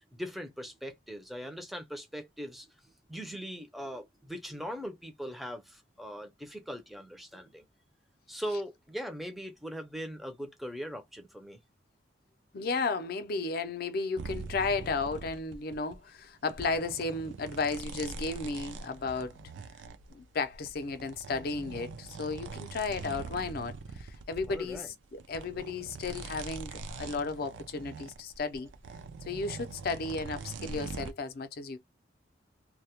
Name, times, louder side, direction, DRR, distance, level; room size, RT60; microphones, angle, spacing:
voice 1, 0.1-2.7 3.1-7.7 8.3-11.6 24.5-24.9, equal, ahead, 0.4 m, -40 dB
voice 2, 12.5-19.4 20.1-28.7 29.3-31.8, left 4 dB, 55° left, 0.5 m, -34 dB
sound 1, 14.2-16.0 16.4-24.9 25.1-31.1, right 4 dB, 90° right, 0.4 m, -43 dB
2.2 x 2.0 x 2.8 m
head